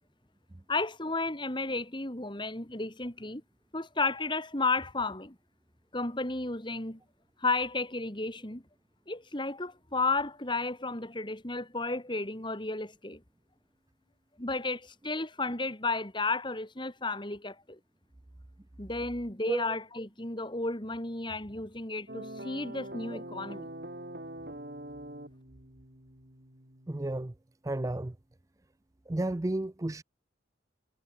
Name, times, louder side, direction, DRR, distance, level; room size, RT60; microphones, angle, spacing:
voice 1, 0.7-3.4 3.7-5.3 5.9-7.0 7.4-8.6 9.1-13.2 14.4-17.8 18.8-23.7, left 3 dB, 25° left, 2.8 m, -33 dB
sound 1, 22.1-27.1, right 1 dB, 55° right, 6.3 m, -44 dB
voice 2, 26.9-27.3 27.6-28.1 29.1-30.0, right 1 dB, 15° right, 0.5 m, -32 dB
head